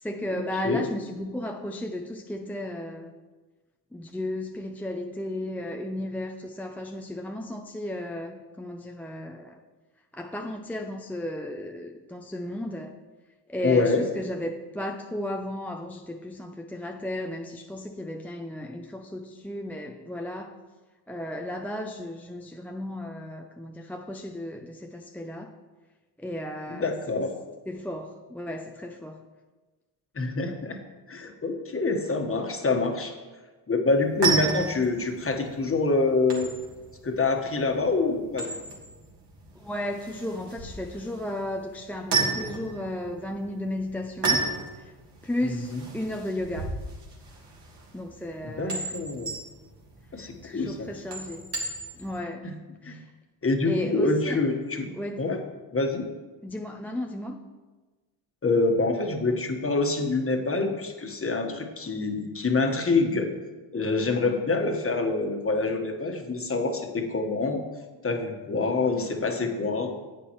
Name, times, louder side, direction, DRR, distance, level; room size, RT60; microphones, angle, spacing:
voice 1, 0.0-3.1 3.9-9.6 10.1-12.9 13.5-20.6 21.1-25.5 26.2-26.9 27.7-29.2 34.2-34.6 39.6-44.4 44.8-44.9 45.2-46.7 47.9-48.9 50.2-51.4 52.0-52.5 52.8-53.0 53.6-54.4 54.9-55.3 56.4-57.4, left 1 dB, 5° left, 3 dB, 0.5 m, -34 dB
voice 2, 13.6-14.0 26.7-27.3 30.1-30.8 31.1-33.1 33.7-36.5 37.0-38.6 45.4-45.8 48.4-49.3 50.1-50.9 52.4-52.5 52.8-53.0 53.4-54.9 55.2-55.4 55.7-56.0 58.4-63.3 63.7-67.6 68.0-69.9, left 3 dB, 25° left, 4 dB, 1.4 m, -26 dB
sound 1, 33.9-52.2, right 4 dB, 55° right, 2.7 m, -33 dB
11.0 x 8.2 x 3.1 m, 1.3 s
supercardioid pair, 75°, 48 cm